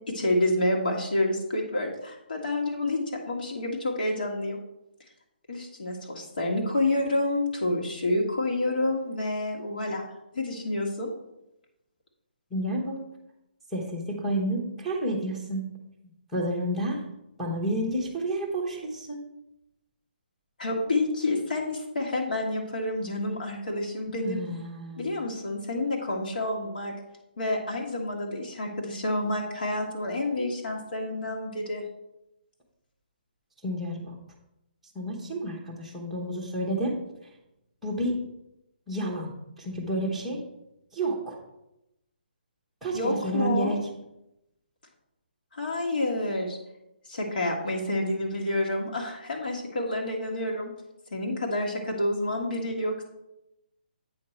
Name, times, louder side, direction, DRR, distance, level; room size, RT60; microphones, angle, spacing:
voice 1, 0.1-3.0 3.3-4.6 5.5-10.0 10.3-11.1 20.6-24.4 25.0-26.9 27.4-31.8 42.9-43.7 45.5-46.6 47.1-50.7 51.1-53.0, left 1 dB, 65° left, -1 dB, 1.6 m, -28 dB
voice 2, 12.5-13.0 13.7-15.7 16.3-17.0 17.4-19.2 24.2-25.1 33.6-34.1 34.9-36.9 37.8-38.1 38.9-40.4 40.9-41.4 42.8-43.8, right 1 dB, ahead, -5 dB, 0.8 m, -30 dB
8.6 x 5.3 x 4.4 m, 0.88 s
hypercardioid pair, 180°, 5 cm